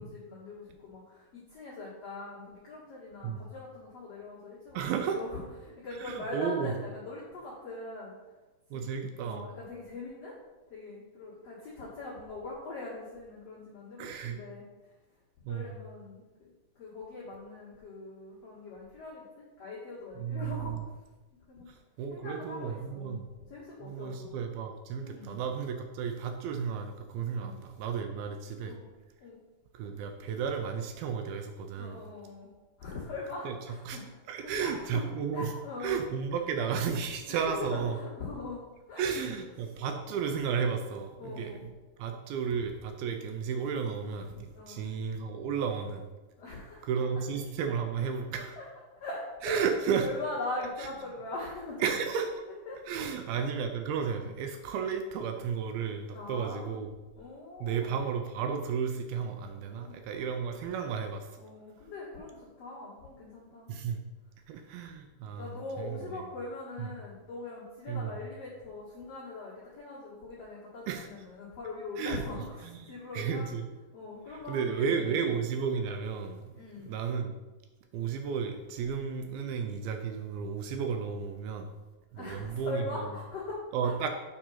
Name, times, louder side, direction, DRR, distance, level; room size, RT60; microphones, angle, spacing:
voice 1, 0.0-4.8 5.1-8.2 8.7-8.8 9.2-10.3 10.7-14.6 15.5-20.8 21.5-21.7 22.1-24.4 25.0-25.4 27.3-27.5 28.7-28.9 29.2-29.4 31.8-32.5 32.8-34.1 34.4-35.0 35.3-36.0 37.3-39.4 41.2-41.6 44.5-44.8 46.4-46.9 48.6-48.7 49.0-49.7 50.0-51.9 52.5-53.1 54.1-54.3 56.1-56.8 57.2-58.0 59.7-60.2 61.4-63.7 65.3-73.5 73.9-75.2 76.5-76.9 82.1-83.9, left 2 dB, 50° left, -7 dB, 2.2 m, -42 dB
voice 2, 4.7-5.2 5.9-6.7 8.7-9.5 14.0-14.4 15.5-15.8 20.2-20.8 21.7-23.3 23.8-28.7 29.7-32.0 33.5-33.6 33.9-34.0 34.3-35.5 35.8-38.0 39.0-41.7 42.0-46.1 46.8-48.6 49.4-50.1 51.8-52.3 52.9-57.0 57.6-61.3 63.7-64.0 64.5-66.2 66.8-66.9 67.9-68.2 70.9-71.1 72.0-72.2 72.8-73.7 74.5-76.5 76.9-77.4 77.9-81.7 82.1-83.1 83.7-84.1, right 6 dB, 80° right, 5 dB, 2.2 m, -33 dB
7.5 x 4.9 x 5.6 m, 1.2 s
omnidirectional pair, 5.0 m